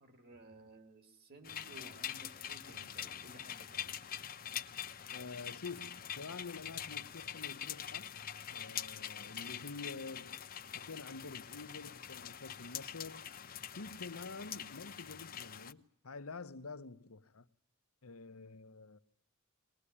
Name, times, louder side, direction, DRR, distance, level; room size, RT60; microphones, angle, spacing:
voice 1, 0.0-3.9, right 1 dB, 45° right, 3.2 m, -56 dB
sound 1, 1.4-15.7, left 9 dB, 45° left, 0.9 m, -44 dB
voice 2, 5.1-8.1 8.5-10.5 10.7-13.2 13.7-17.5 18.0-19.0, left 4 dB, 80° left, 1.0 m, -48 dB
21.5 x 20.5 x 9.9 m
head